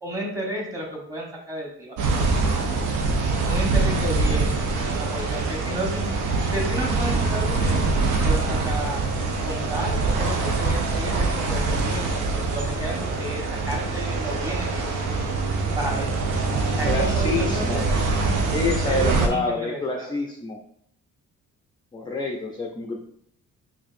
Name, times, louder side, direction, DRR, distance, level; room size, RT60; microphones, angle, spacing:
voice 1, 0.0-2.5 3.4-7.9 8.2-9.0 9.4-15.2 15.7-16.3 16.8-17.9 18.8-20.1, right 1 dB, 10° right, -1 dB, 1.2 m, -32 dB
sound 1, 2.0-19.3, right 3 dB, 85° right, 0.6 m, -24 dB
voice 2, 16.8-17.9 18.5-20.6 21.9-23.0, left 3 dB, 15° left, 1 dB, 0.4 m, -27 dB
4.4 x 2.6 x 2.5 m, 0.69 s
cardioid pair, 90°, 30 cm